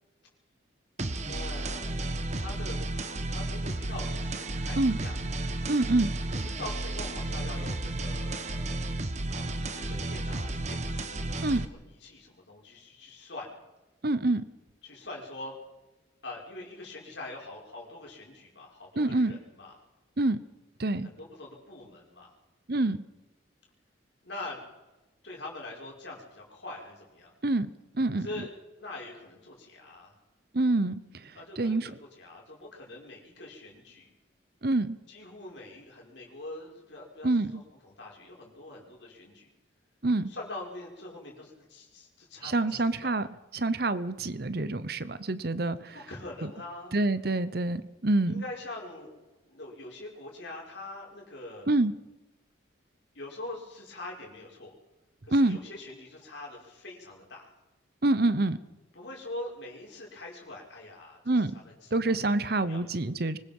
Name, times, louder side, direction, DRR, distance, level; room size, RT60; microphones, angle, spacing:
sound 1, 1.0-11.6, right 2 dB, 35° right, 1.2 m, -33 dB
voice 1, 1.2-2.8 3.3-5.2 6.3-8.8 9.7-11.2 11.4-13.5 14.8-15.6 16.2-19.8 21.0-22.3 24.2-24.6 25.2-27.3 28.1-28.5 28.8-30.2 31.3-34.1 35.1-39.5 40.3-43.2 45.9-47.0 48.3-49.2 49.4-51.7 53.1-54.8 55.2-57.5 58.9-62.1 62.7-62.8, left 2 dB, 70° left, -2 dB, 6.1 m, -43 dB
voice 2, 5.7-6.1 11.4-11.6 14.0-14.4 19.0-19.3 20.2-20.4 20.8-21.1 22.7-23.0 27.4-27.7 27.9-28.3 30.5-31.9 34.6-35.0 37.2-37.6 40.0-40.3 42.4-43.3 43.5-45.9 46.9-48.4 51.7-51.9 55.3-55.6 58.0-58.6 61.3-61.5 61.9-63.4, right 2 dB, 50° right, 15 dB, 0.9 m, -26 dB
25.0 x 20.5 x 5.5 m, 1.1 s
head